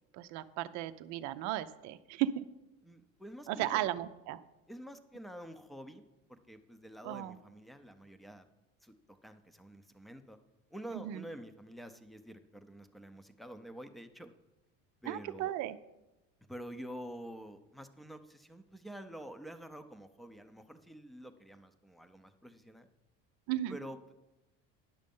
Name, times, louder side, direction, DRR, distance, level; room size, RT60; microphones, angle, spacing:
voice 1, 0.1-2.5 3.5-4.4 7.0-7.4 10.9-11.2 15.1-15.8 23.5-23.8, right 13 dB, 65° right, 11 dB, 0.6 m, -35 dB
voice 2, 2.8-3.9 4.7-6.0 6.3-8.4 8.8-10.4 10.7-14.3 15.0-15.5 16.5-22.9 23.7-24.1, right 1 dB, ahead, 9 dB, 0.6 m, -48 dB
10.5 x 6.4 x 5.4 m, 0.99 s
cardioid pair, 120°, 29 cm